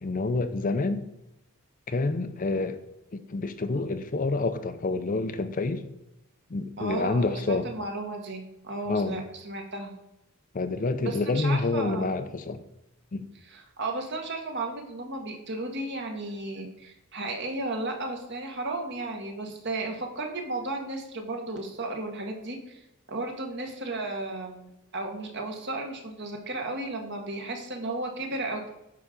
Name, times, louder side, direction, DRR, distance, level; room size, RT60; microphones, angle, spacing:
voice 1, 0.0-1.0 1.9-2.8 3.1-5.8 6.5-7.7 8.9-9.2 10.5-12.6 13.1-13.3, left 3 dB, 35° left, 0.5 m, -28 dB
voice 2, 6.8-9.9 11.0-12.2 13.4-22.8 23.1-28.7, right 2 dB, 50° right, 1.7 m, -34 dB
9.7 x 3.8 x 6.8 m
head